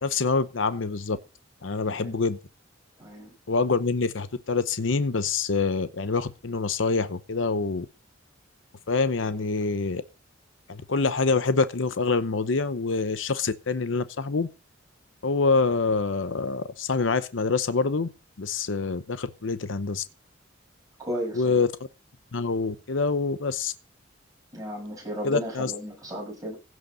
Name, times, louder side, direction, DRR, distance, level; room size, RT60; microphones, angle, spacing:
voice 1, 0.0-1.2 1.6-2.4 3.5-7.9 8.9-10.0 10.7-14.5 15.2-18.1 18.4-20.0 21.3-21.7 22.3-23.7 25.2-25.7, left 4 dB, 75° left, 0.8 m, -26 dB
voice 2, 3.0-3.3 21.0-21.6 24.5-26.6, equal, 20° right, 7.3 m, -34 dB
16.0 x 6.4 x 5.4 m
head